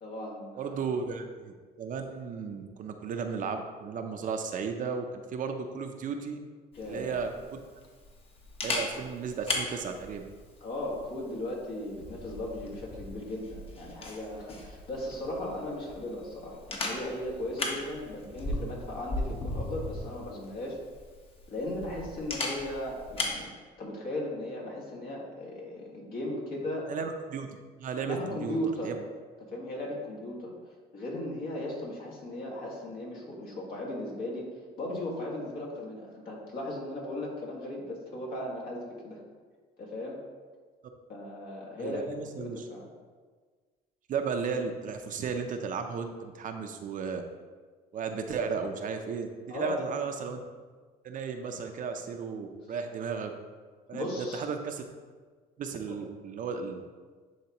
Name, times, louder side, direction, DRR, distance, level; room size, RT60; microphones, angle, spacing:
voice 1, 0.0-0.8 6.7-7.2 10.6-20.8 21.5-23.5 23.8-26.9 28.1-29.0 29.5-30.5 30.9-34.5 34.8-39.2 39.8-40.2 41.1-42.0 42.4-42.9 49.5-49.8 53.9-54.4 55.9-56.0, left 1 dB, 60° left, -2 dB, 1.8 m, -37 dB
voice 2, 0.6-6.4 6.8-7.6 8.6-10.3 26.9-27.5 27.8-28.6 28.8-29.0 41.8-42.7 44.1-47.2 47.9-50.4 51.0-53.3 53.9-54.8 55.6-56.8, right 5 dB, 50° right, 5 dB, 0.6 m, -34 dB
Camera, 6.7-23.4, left 2 dB, 35° left, 1.2 m, -38 dB
10.5 x 3.6 x 3.0 m, 1.5 s
cardioid pair, 110°, 17 cm